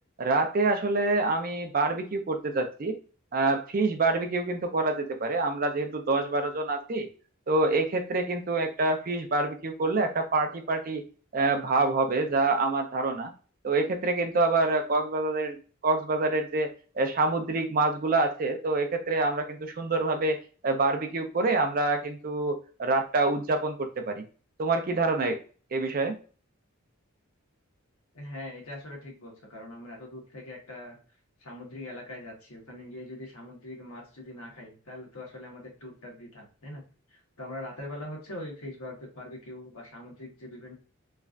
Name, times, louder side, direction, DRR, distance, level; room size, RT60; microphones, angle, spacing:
voice 1, 0.2-3.0 3.3-7.1 7.5-11.0 11.3-13.3 13.6-15.6 15.8-20.4 20.6-24.2 24.6-25.4 25.7-26.2, right 3 dB, 40° right, 6 dB, 0.4 m, -26 dB
voice 2, 28.1-31.0 31.4-36.8 37.1-40.7, left 1 dB, 85° left, -1 dB, 1.2 m, -42 dB
3.1 x 2.4 x 2.4 m, 0.38 s
head